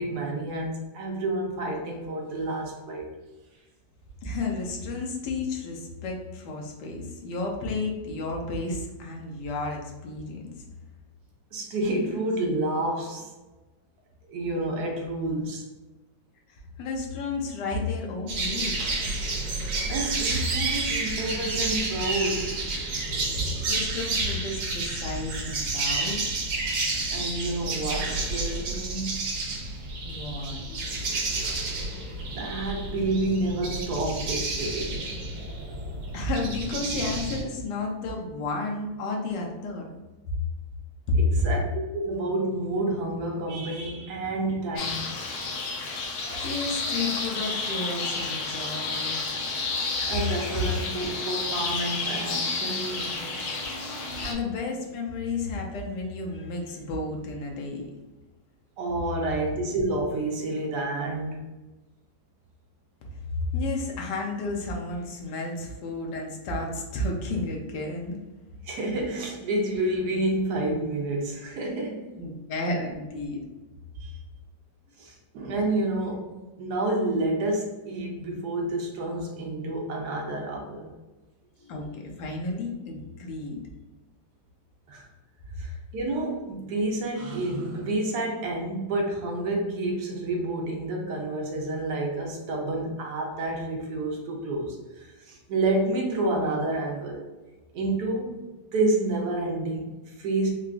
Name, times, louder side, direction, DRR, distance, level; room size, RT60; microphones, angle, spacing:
voice 1, 0.0-3.1 11.5-13.3 14.3-15.6 19.5-22.6 27.1-29.3 32.3-35.1 41.3-45.4 50.1-53.3 58.8-61.4 68.6-72.1 74.0-74.1 75.0-76.3 76.6-80.9 84.9-85.0 85.6-97.2 97.7-98.4 98.7-100.5, right 2 dB, 70° right, 0 dB, 1.2 m, -29 dB
voice 2, 4.2-10.4 16.5-19.0 23.7-26.2 30.0-30.6 36.1-39.8 41.1-41.5 46.1-49.5 54.2-57.9 63.4-68.2 72.2-73.4 81.6-83.6, left 2 dB, 80° left, 0 dB, 1.3 m, -32 dB
sound 1, 18.3-37.4, right 3 dB, 90° right, 1.4 m, -30 dB
sound 2, 44.8-54.3, left 3 dB, 65° left, 0.9 m, -31 dB
3.8 x 2.3 x 2.4 m, 1.1 s
omnidirectional pair, 1.9 m